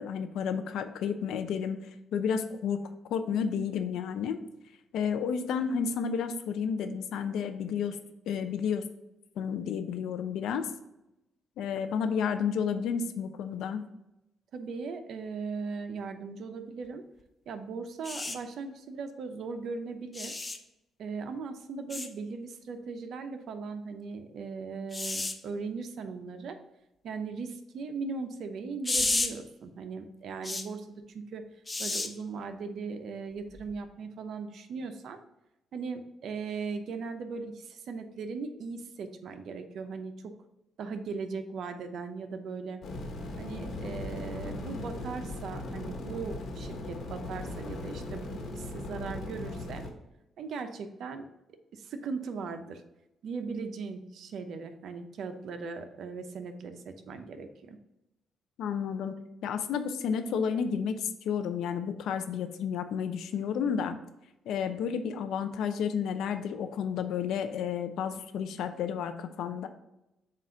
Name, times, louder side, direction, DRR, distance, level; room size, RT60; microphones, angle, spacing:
voice 1, 0.0-1.8 2.1-2.8 3.1-4.4 4.9-8.0 8.3-8.8 9.4-10.7 11.6-13.8 58.6-59.2 59.4-64.0 64.5-69.7, left 7 dB, 80° left, 8 dB, 0.6 m, -31 dB
voice 2, 14.5-17.0 17.5-20.4 21.0-26.6 27.0-31.4 31.8-35.2 35.7-40.3 40.8-42.8 43.4-49.8 50.4-51.3 51.7-52.8 53.2-57.8, right 4 dB, 65° right, 7 dB, 0.7 m, -38 dB
sound 1, 18.0-18.4 20.1-20.6 21.9-22.1 24.9-25.3 28.8-29.3 30.4-30.6 31.7-32.1 33.6-33.7, left 2 dB, 20° left, 0.7 m, -31 dB
sound 2, 42.8-49.9, left 2 dB, 65° left, 1.4 m, -38 dB
7.5 x 2.6 x 5.6 m, 0.90 s
cardioid pair, 90°, 0 cm